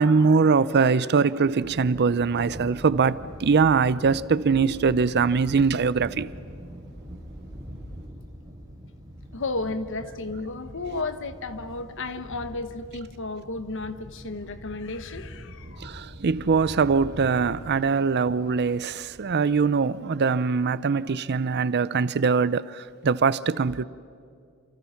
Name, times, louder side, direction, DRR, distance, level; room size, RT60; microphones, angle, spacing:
voice 1, 0.0-6.3 10.9-11.0 15.8-23.9, right 5 dB, 50° right, 0.5 m, -22 dB
Thunder, 1.5-19.9, equal, 15° right, 4.8 m, -43 dB
voice 2, 9.3-16.1, left 3 dB, 60° left, 1.3 m, -33 dB
29.5 x 27.5 x 5.8 m
head